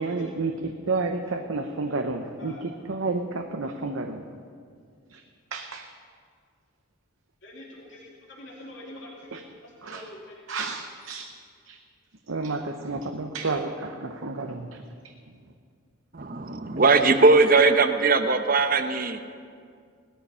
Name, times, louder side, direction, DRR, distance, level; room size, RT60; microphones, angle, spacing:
voice 1, 0.0-2.6 2.9-4.3 5.1-5.2 5.5-5.9 9.3-9.4 9.8-10.0 10.5-11.3 11.7-11.8 12.3-14.8, right 3 dB, 75° right, 5 dB, 0.8 m, -30 dB
voice 2, 7.4-10.4, left 1 dB, 60° left, -4 dB, 2.7 m, -44 dB
voice 3, 16.1-19.2, right 3 dB, 45° right, 8 dB, 0.8 m, -20 dB
17.5 x 12.5 x 5.6 m, 2.2 s
head